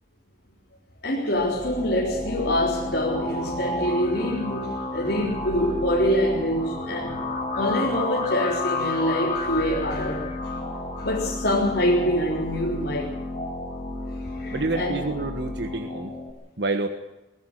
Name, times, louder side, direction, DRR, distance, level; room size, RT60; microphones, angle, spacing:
voice 1, 1.0-7.2 7.5-10.3 11.0-13.2 14.1-15.0, equal, 60° left, 3.8 m, -25 dB
sound 1, 1.3-16.3, left 2 dB, 35° left, 4.9 m, -31 dB
voice 2, 14.5-16.1 16.6-16.9, right 3 dB, 65° right, 1.4 m, -28 dB
21.5 x 14.5 x 9.0 m
head